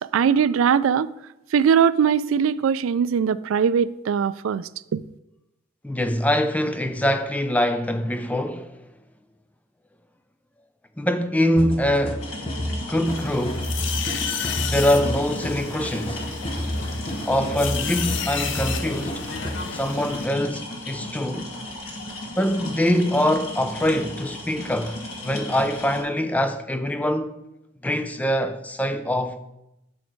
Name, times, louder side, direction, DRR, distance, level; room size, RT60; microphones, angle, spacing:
voice 1, 0.0-1.1 1.5-5.0, right 7 dB, 70° right, 0.3 m, -21 dB
voice 2, 5.8-8.8 11.0-12.3 12.9-13.7 14.6-16.2 17.3-19.2 19.7-21.5 22.4-27.4 27.8-29.4, left 1 dB, 5° left, 0.4 m, -24 dB
sound 1, 11.6-19.6, equal, 25° left, 0.8 m, -31 dB
sound 2, 12.2-26.0, left 1 dB, 85° left, 1.6 m, -36 dB
sound 3, 13.1-20.3, left 7 dB, 60° left, 0.6 m, -33 dB
6.3 x 6.1 x 4.6 m
head